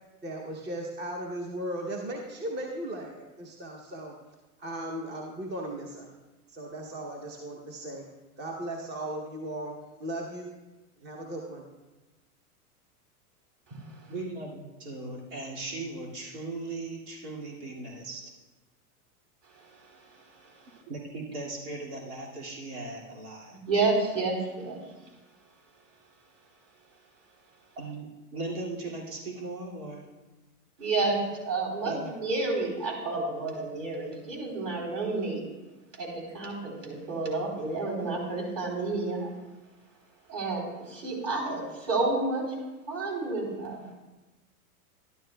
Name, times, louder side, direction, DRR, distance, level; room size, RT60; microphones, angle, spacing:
voice 1, 0.2-4.1 4.6-6.1 6.5-8.1 8.4-10.5 11.0-11.7, right 1 dB, 25° right, 1 dB, 0.9 m, -37 dB
voice 2, 14.1-18.3 20.9-23.6 27.8-30.1 31.8-32.2, right 2 dB, 80° right, -2 dB, 2.4 m, -38 dB
voice 3, 23.7-24.8 30.8-31.2 31.5-35.4 36.0-39.3 40.3-42.5 42.9-43.9, right 3 dB, 40° right, -2 dB, 3.6 m, -30 dB
12.0 x 11.5 x 2.3 m, 1.1 s
hypercardioid pair, 125°, 45 cm